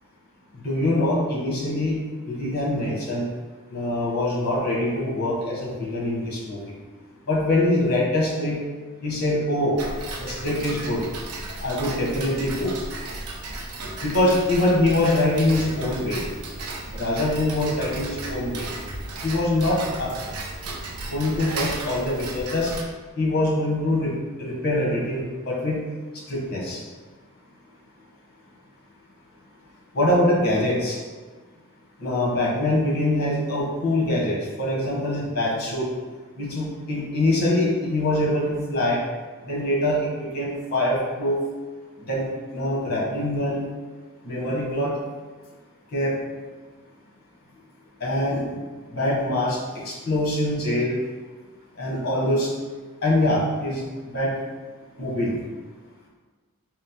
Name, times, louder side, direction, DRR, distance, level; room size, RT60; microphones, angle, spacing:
voice 1, 0.6-2.0 2.3-3.3 3.7-6.8 7.3-8.6 9.0-9.8 10.2-11.0 11.6-12.7 14.0-16.2 16.9-18.7 19.2-20.1 21.1-22.7 23.2-24.1 24.4-25.8 26.1-26.8 29.9-31.0 32.0-35.9 36.3-39.0 39.4-41.4 42.1-43.7 44.2-45.0 45.9-46.1 48.0-48.6 48.9-51.0 51.8-52.5 53.0-54.3 55.0-55.4, left 1 dB, 45° left, -4 dB, 1.1 m, -24 dB
Tick-tock, 9.8-22.8, right 2 dB, 85° right, 0.5 m, -34 dB
4.2 x 2.0 x 4.2 m, 1.4 s
head